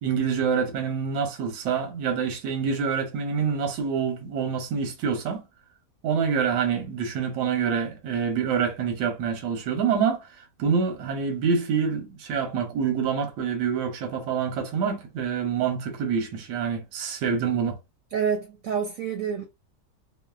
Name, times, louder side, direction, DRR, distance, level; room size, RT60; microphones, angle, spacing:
voice 1, 0.0-5.4 6.0-17.8, right 6 dB, 90° right, 1.3 m, -26 dB
voice 2, 18.1-19.5, right 7 dB, 70° right, 0.8 m, -28 dB
3.1 x 2.0 x 2.2 m
omnidirectional pair, 1.8 m